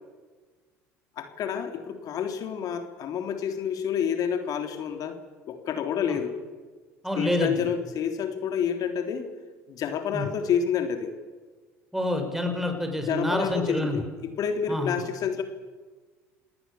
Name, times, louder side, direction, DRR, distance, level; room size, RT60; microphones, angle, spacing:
voice 1, 1.2-5.2 5.5-6.3 7.1-9.3 9.7-11.1 13.1-15.4, left 7 dB, 50° left, 6 dB, 3.4 m, -29 dB
voice 2, 7.0-7.7 10.1-10.3 11.9-14.0 14.7-15.0, left 1 dB, 5° right, 5 dB, 6.0 m, -27 dB
27.5 x 19.0 x 7.1 m, 1.4 s
hypercardioid pair, 65°, 8 cm